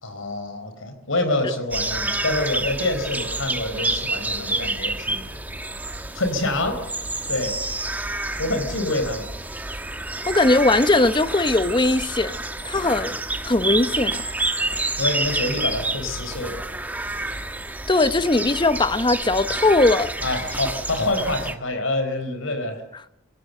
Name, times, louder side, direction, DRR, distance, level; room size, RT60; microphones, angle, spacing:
voice 1, 0.0-5.3 6.1-6.8 7.3-7.5 8.4-9.3 15.0-16.6 20.2-22.8, left 2 dB, 80° left, 4.4 m, -26 dB
sound 1, 1.7-21.5, right 2 dB, 10° right, 1.1 m, -29 dB
voice 2, 10.3-12.4 12.6-13.2 13.4-14.2 17.9-20.1, left 2 dB, 25° left, 0.8 m, -19 dB
26.0 x 16.5 x 7.7 m
head